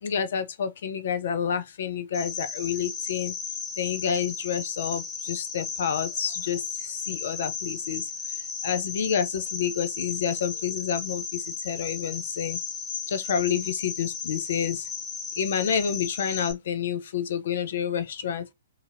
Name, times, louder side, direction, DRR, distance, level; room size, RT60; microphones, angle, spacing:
voice 1, 0.0-3.3 3.8-8.0 8.3-12.6 13.1-14.9 15.4-18.4, left 8 dB, 65° left, 0.5 m, -29 dB
Cricket, 2.1-16.5, left 5 dB, 25° left, 0.8 m, -35 dB
2.8 x 2.7 x 2.5 m
hypercardioid pair, 125°, 0 cm